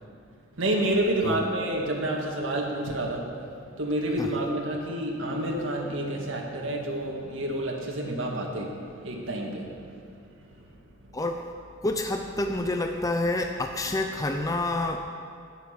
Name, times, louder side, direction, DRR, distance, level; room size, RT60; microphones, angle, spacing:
voice 1, 0.5-10.0 10.4-10.7, right 1 dB, 70° right, -1 dB, 1.9 m, -29 dB
voice 2, 11.8-15.1, left 2 dB, 15° left, 4 dB, 0.5 m, -28 dB
11.0 x 9.6 x 6.7 m, 2.3 s
head